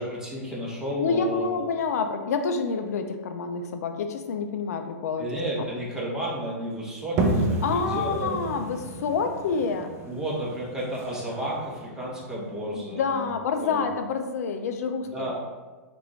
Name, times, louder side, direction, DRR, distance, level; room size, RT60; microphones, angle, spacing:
voice 1, 0.0-1.6 5.2-8.4 10.1-13.3 13.6-13.8 15.0-15.3, right 1 dB, 5° right, -6 dB, 1.1 m, -32 dB
voice 2, 1.0-5.3 5.6-5.7 7.6-9.9 12.7-15.3, left 5 dB, 80° left, 6 dB, 0.4 m, -28 dB
sound 1, 7.2-12.6, right 2 dB, 30° right, 0.5 m, -30 dB
4.7 x 2.5 x 3.1 m, 1.3 s
hypercardioid pair, 135°, 8 cm